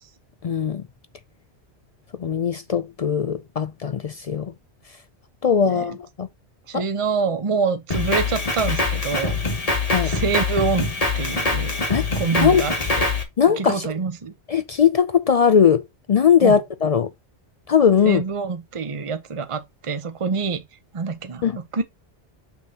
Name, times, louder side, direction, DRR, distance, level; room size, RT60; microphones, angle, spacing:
voice 1, 0.4-0.8 2.2-4.5 5.4-6.3 6.7-6.8 9.9-10.1 11.9-12.0 12.4-12.6 13.4-13.8 14.5-15.8 16.1-17.1 17.7-18.2 21.4-21.6, left 7 dB, 60° left, 0.4 m, -19 dB
voice 2, 5.6-6.0 6.7-9.4 10.0-11.7 12.1-13.1 13.6-14.3 16.4-16.6 18.0-20.6 20.9-21.5 21.7-21.8, right 5 dB, 30° right, 0.8 m, -26 dB
Drum kit, 7.9-13.2, left 3 dB, 35° left, 1.6 m, -24 dB
6.3 x 6.2 x 2.8 m
omnidirectional pair, 1.2 m